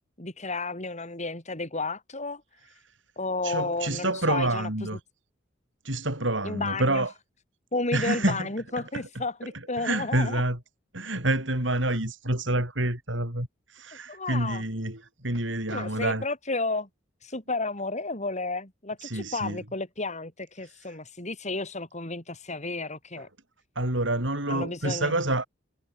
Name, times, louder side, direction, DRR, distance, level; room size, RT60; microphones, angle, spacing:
voice 1, 0.2-2.4 3.2-4.9 6.4-7.1 7.7-10.4 14.1-14.6 15.7-16.9 17.2-23.3 24.5-25.2, left 3 dB, 40° left, 6.2 m, -32 dB
voice 2, 3.4-5.0 5.8-7.1 7.9-8.5 9.8-10.6 10.9-16.2 19.0-19.6 23.8-25.5, right 1 dB, 70° right, 7.5 m, -28 dB
head